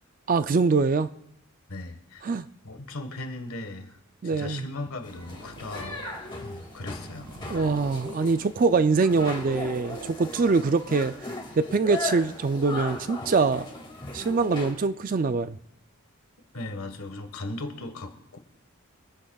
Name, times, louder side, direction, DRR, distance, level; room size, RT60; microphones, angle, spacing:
voice 1, 0.3-1.1 2.2-2.5 4.2-4.6 7.5-11.1 11.6-13.7 14.1-15.6, right 4 dB, 40° right, 12 dB, 0.4 m, -24 dB
voice 2, 1.7-4.0 4.2-6.0 6.4-7.3 16.5-18.4, left 2 dB, 75° left, 6 dB, 1.5 m, -38 dB
sound 1, 5.0-14.7, left 2 dB, 20° left, 2.2 m, -38 dB
Purr, 5.1-10.6, right 2 dB, 85° right, 1.8 m, -45 dB
24.5 x 10.0 x 2.4 m, 0.82 s
head